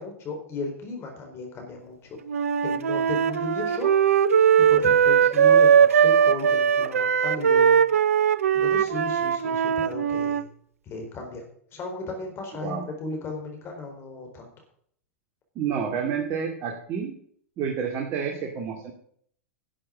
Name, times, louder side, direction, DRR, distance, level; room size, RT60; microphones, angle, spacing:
voice 1, 0.0-2.2 2.6-3.9 4.6-7.8 8.5-10.5 10.9-11.4 11.7-14.5, left 3 dB, 35° left, 3 dB, 4.3 m, -35 dB
Wind instrument woodwind instrument, 2.3-10.4, right 8 dB, 80° right, 0.7 m, -20 dB
voice 2, 15.6-17.2 17.6-18.9, right 7 dB, 40° right, 2 dB, 2.3 m, -29 dB
11.5 x 7.7 x 7.5 m, 0.63 s
hypercardioid pair, 105°, 8 cm